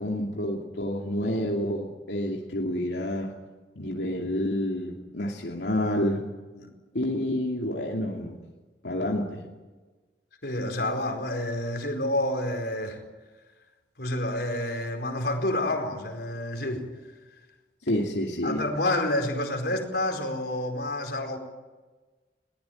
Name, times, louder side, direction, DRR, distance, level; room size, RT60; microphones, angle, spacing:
voice 1, 0.0-3.3 3.8-6.3 6.9-8.4 8.8-9.4 17.8-18.6, left 1 dB, 85° left, -1 dB, 2.8 m, -29 dB
voice 2, 10.4-13.0 14.0-16.9 18.4-21.4, left 1 dB, 65° left, 4 dB, 4.6 m, -29 dB
22.0 x 19.5 x 9.3 m, 1.3 s
head